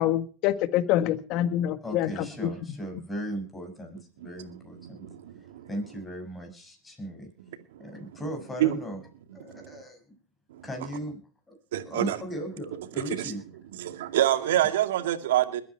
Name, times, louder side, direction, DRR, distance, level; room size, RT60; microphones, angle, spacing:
voice 1, 0.0-2.1, left 12 dB, 50° left, 12 dB, 1.7 m, -25 dB
voice 2, 1.8-5.0 5.7-7.3 7.8-9.0 9.3-10.0 10.6-11.2 11.5-11.6 11.9-13.4, equal, 10° left, 4 dB, 6.6 m, -37 dB
voice 3, 4.8-5.7 7.7-7.9 8.6-8.8 9.5-9.8 10.5-10.6 11.7-12.2 13.1-13.3 13.7-15.6, right 13 dB, 75° right, 8 dB, 2.3 m, -27 dB
21.5 x 9.5 x 4.6 m, 0.37 s
hypercardioid pair, 115°, 0 cm